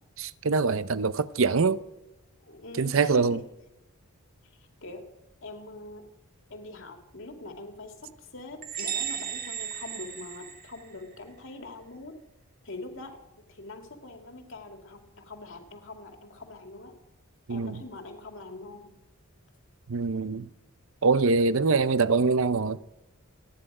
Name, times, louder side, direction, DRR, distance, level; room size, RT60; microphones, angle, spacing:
voice 1, 0.2-1.8 2.7-3.4 17.5-17.8 19.9-20.5 21.0-22.8, right 4 dB, 60° right, 0.6 m, -24 dB
voice 2, 2.4-3.4 4.8-5.0 5.4-6.1 6.5-12.2 12.6-16.9 17.5-18.9, left 2 dB, 60° left, 2.5 m, -43 dB
sound 1, 8.6-11.2, right 8 dB, 40° right, 1.8 m, -35 dB
28.0 x 10.0 x 4.9 m
head